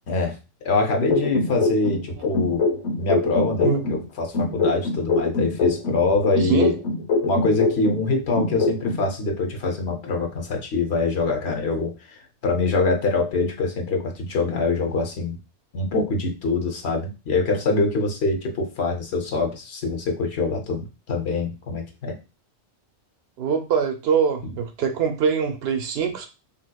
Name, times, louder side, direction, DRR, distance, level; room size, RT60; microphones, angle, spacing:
voice 1, 0.1-0.4 0.6-2.7 3.0-6.7 7.2-15.4 15.7-22.1, left 3 dB, 70° left, 2 dB, 1.0 m, -24 dB
sound 1, 1.1-4.0 4.3-8.0 8.3-9.0, left 3 dB, 85° left, 1.3 m, -23 dB
voice 2, 6.4-6.7 23.4-26.3, right 6 dB, 65° right, 5 dB, 0.8 m, -23 dB
3.5 x 2.8 x 2.2 m, 0.29 s
omnidirectional pair, 1.2 m